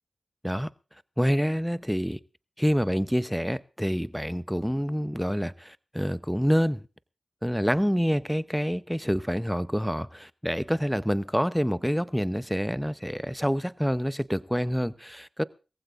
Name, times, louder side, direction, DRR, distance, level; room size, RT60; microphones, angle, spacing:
voice 1, 1.2-2.2 2.6-6.8 7.4-15.4, equal, ahead, 15 dB, 0.7 m, -27 dB
22.0 x 15.0 x 2.5 m, 0.33 s
cardioid pair, 40°, 0 cm